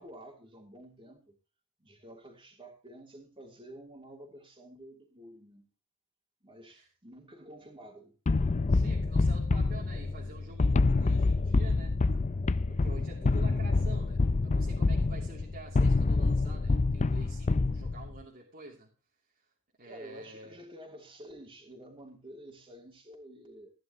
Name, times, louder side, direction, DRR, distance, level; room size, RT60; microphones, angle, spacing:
voice 1, 0.0-1.4 1.8-5.7 6.4-8.1 19.8-23.7, right 1 dB, 25° right, 3.2 m, -50 dB
sound 1, 8.3-18.2, left 3 dB, 35° left, 0.5 m, -27 dB
voice 2, 8.7-12.0 12.7-18.9 19.4-19.5 19.8-20.6, right 2 dB, 45° right, 2.8 m, -49 dB
15.5 x 11.0 x 3.0 m
head